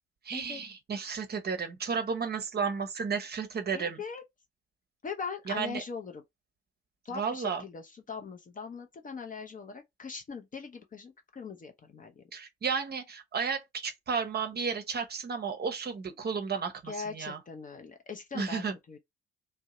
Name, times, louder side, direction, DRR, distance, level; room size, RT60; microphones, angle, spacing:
voice 1, 0.2-4.0 5.5-5.8 7.1-7.6 12.3-17.4 18.3-18.7, right 5 dB, 30° right, 0.8 m, -33 dB
voice 2, 3.7-4.2 5.0-6.2 7.0-12.2 16.9-19.0, left 5 dB, 25° left, 0.6 m, -41 dB
2.7 x 2.1 x 4.0 m
figure-of-eight pair, 45°, 32 cm